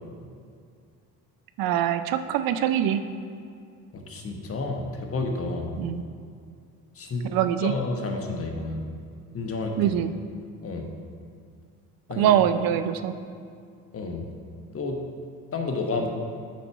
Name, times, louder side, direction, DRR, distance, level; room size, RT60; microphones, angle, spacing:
voice 1, 1.6-3.0 5.8-6.0 7.3-7.7 9.8-10.1 12.2-13.1, right 10 dB, 65° right, 10 dB, 0.5 m, -23 dB
voice 2, 3.9-5.8 6.9-7.3 7.6-8.9 9.3-10.0 10.6-10.9 12.1-12.3 13.9-14.2 14.7-15.0 15.5-16.1, left 3 dB, 35° left, 3 dB, 1.1 m, -30 dB
9.4 x 4.0 x 4.6 m, 2.3 s
supercardioid pair, 75°, 38 cm